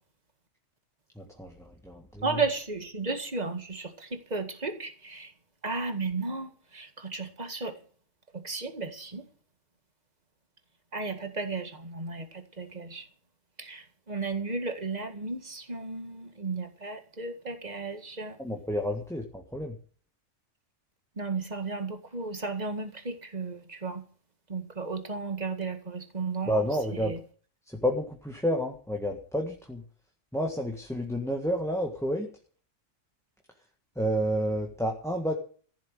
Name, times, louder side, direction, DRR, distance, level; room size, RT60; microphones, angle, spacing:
voice 1, 1.1-2.2 18.4-19.8 26.5-27.2 27.7-29.8 30.3-32.3 33.9-35.3, equal, ahead, 1.7 m, -30 dB
voice 2, 2.2-5.3 5.6-7.8 8.3-9.3 10.9-13.1 13.6-18.4 21.2-24.0 24.5-26.6 26.9-27.2, right 4 dB, 35° right, 2.1 m, -34 dB
15.5 x 7.3 x 9.1 m
omnidirectional pair, 1.3 m